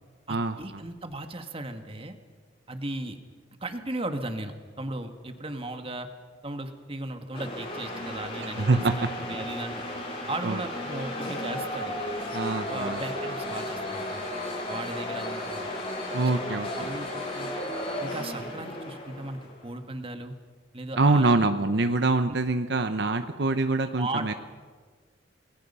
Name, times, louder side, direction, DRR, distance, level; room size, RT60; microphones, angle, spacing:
voice 1, 0.3-2.2 2.7-3.2 3.6-6.1 6.4-9.8 10.3-12.0 12.7-14.3 14.7-15.7 16.2-17.7 18.0-20.3 20.7-21.3 22.3-22.4 24.0-24.3, right 2 dB, 30° right, 7 dB, 1.7 m, -36 dB
sound 1, 7.3-19.6, left 1 dB, 30° left, 5.6 m, -34 dB
voice 2, 8.6-9.1 10.4-10.6 12.3-13.0 16.1-16.7 21.0-24.3, right 3 dB, 65° right, 8 dB, 0.9 m, -24 dB
28.5 x 20.5 x 5.6 m, 1.5 s
head